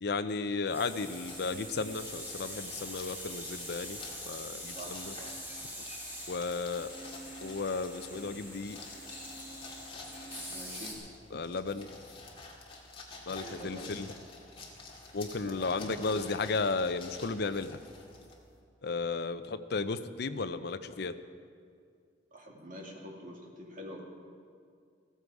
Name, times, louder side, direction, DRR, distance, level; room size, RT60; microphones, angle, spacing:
voice 1, 0.0-4.0 4.3-5.2 6.3-6.9 7.4-8.8 11.3-11.9 13.3-14.1 15.1-17.8 18.8-21.1, left 4 dB, 60° left, 10 dB, 0.6 m, -34 dB
sound 1, 0.6-10.9, equal, 10° right, 2.8 m, -44 dB
sound 2, 1.1-18.6, left 3 dB, 30° left, 2.1 m, -50 dB
voice 2, 4.7-5.3 10.5-11.0 13.4-13.9 15.4-16.3 22.3-24.0, equal, 45° right, -1 dB, 2.4 m, -46 dB
15.0 x 14.5 x 4.8 m, 2.3 s
head